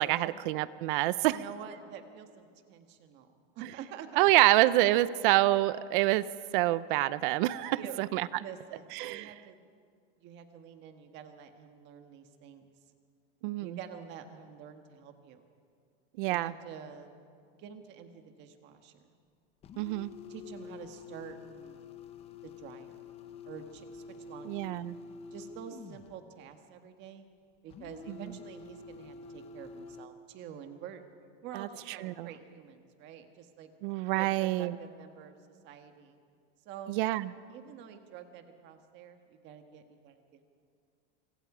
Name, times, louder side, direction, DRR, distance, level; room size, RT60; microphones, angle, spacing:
voice 1, 0.0-1.4 4.2-6.2 6.5-8.3 9.0-9.3 13.4-13.8 16.2-16.5 19.8-20.1 24.4-25.0 31.5-31.7 32.0-32.3 33.8-34.8 36.9-37.3, right 17 dB, 50° right, 17 dB, 0.7 m, -27 dB
voice 2, 1.2-3.3 3.5-4.3 4.6-5.0 7.7-8.0 8.4-9.6 10.2-12.7 13.6-15.4 16.2-17.1 17.6-19.2 20.3-21.9 22.4-22.9 23.5-24.9 25.3-27.2 27.6-31.0 31.4-33.7 34.1-36.2 36.6-37.0 37.5-40.4, right 8 dB, 30° right, 7 dB, 1.6 m, -48 dB
sound 1, 19.6-26.2 27.7-30.1, left 5 dB, 20° left, 0.7 m, -48 dB
26.0 x 24.0 x 5.0 m, 2.3 s
supercardioid pair, 175°, 34 cm